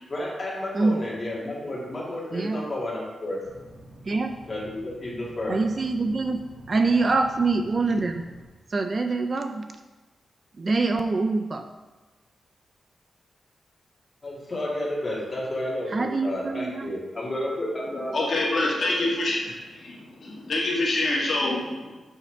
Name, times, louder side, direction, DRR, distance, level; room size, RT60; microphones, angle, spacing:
voice 1, 0.1-3.4 4.5-5.6 14.2-19.1, left 1 dB, 25° left, -6 dB, 2.1 m, -31 dB
sound 1, 3.4-8.4, right 1 dB, 50° right, 1.3 m, -48 dB
voice 2, 5.5-6.4 6.7-8.2 8.7-9.7 10.6-11.6 15.9-16.9, right 3 dB, 35° right, 6 dB, 0.3 m, -24 dB
voice 3, 18.1-22.0, left 2 dB, 50° left, -3 dB, 1.5 m, -26 dB
7.1 x 5.6 x 3.4 m, 1.2 s
wide cardioid pair, 155°, 0 cm